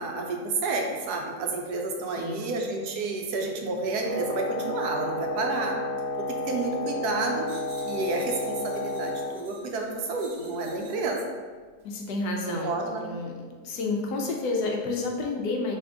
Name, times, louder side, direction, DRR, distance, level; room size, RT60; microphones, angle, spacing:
voice 1, 0.0-5.8 6.2-7.5 7.8-11.2 12.5-13.1, right 3 dB, 85° right, 2 dB, 1.2 m, -30 dB
voice 2, 2.2-2.5 11.8-15.8, left 3 dB, 85° left, 1 dB, 1.2 m, -30 dB
Wind instrument woodwind instrument, 4.0-9.3, left 2 dB, 60° left, 1.5 m, -31 dB
sound 1, 7.4-11.2 11.8-12.0, right 3 dB, 55° right, 0.8 m, -51 dB
3.6 x 3.4 x 3.5 m, 1.5 s
omnidirectional pair, 1.6 m